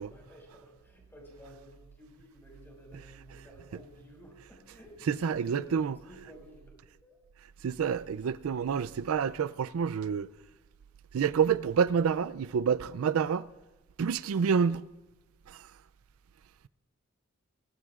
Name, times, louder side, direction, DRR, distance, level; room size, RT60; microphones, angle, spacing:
voice 1, 0.1-7.2, equal, 10° left, 5.1 m, -53 dB
voice 2, 5.1-6.0 7.6-10.3 11.1-13.5 14.0-14.9 15.5-15.7, right 6 dB, 85° right, 0.4 m, -28 dB
22.5 x 18.5 x 2.4 m
head